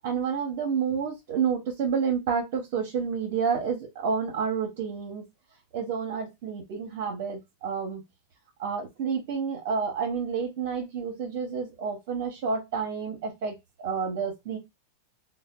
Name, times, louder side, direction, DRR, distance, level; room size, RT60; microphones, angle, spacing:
voice 1, 0.0-5.3 5.7-8.0 8.6-14.6, right 6 dB, 55° right, 0.9 m, -29 dB
3.2 x 2.1 x 2.3 m
supercardioid pair, 150°, 0 cm